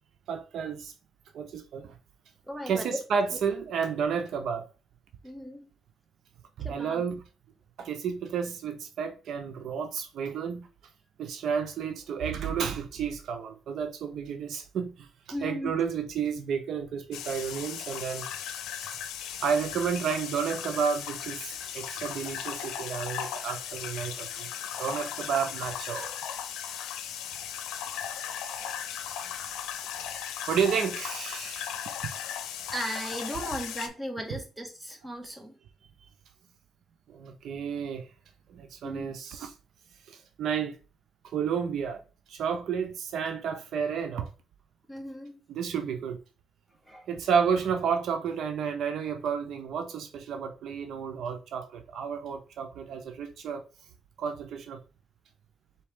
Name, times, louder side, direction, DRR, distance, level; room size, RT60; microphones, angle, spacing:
voice 1, 0.3-0.9 1.3-1.9 2.7-4.7 6.6-7.2 7.8-10.7 11.2-15.1 15.4-18.3 19.4-24.5 24.8-26.2 30.5-31.8 34.3-34.4 37.1-38.1 38.5-39.5 40.1-40.8 41.3-42.0 42.3-44.3 45.5-46.2 47.1-53.6 54.2-54.8, right 7 dB, 70° right, 0.6 m, -31 dB
voice 2, 2.5-2.9 5.2-5.7 6.6-7.0 15.3-15.7 28.4-28.8 32.7-35.5 38.8-39.1 44.9-45.4 46.9-47.0, equal, 10° right, 1.3 m, -37 dB
sound 1, 17.1-33.9, left 9 dB, 90° left, 0.6 m, -37 dB
4.3 x 3.3 x 3.5 m
cardioid pair, 90°, 0 cm